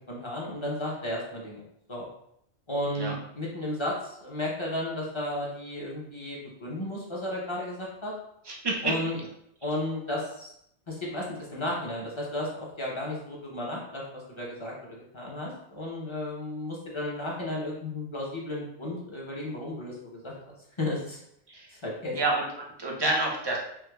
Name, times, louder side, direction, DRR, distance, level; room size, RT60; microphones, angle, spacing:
voice 1, 0.0-1.6 1.9-2.1 2.7-8.1 8.8-9.2 9.6-10.5 10.9-21.2 21.7-22.2, left 1 dB, 30° left, -4 dB, 0.6 m, -34 dB
voice 2, 8.4-9.2 21.5-21.7 22.1-22.4 22.8-23.6, right 2 dB, 30° right, -1 dB, 0.5 m, -28 dB
4.5 x 2.2 x 2.2 m, 0.74 s
omnidirectional pair, 1.2 m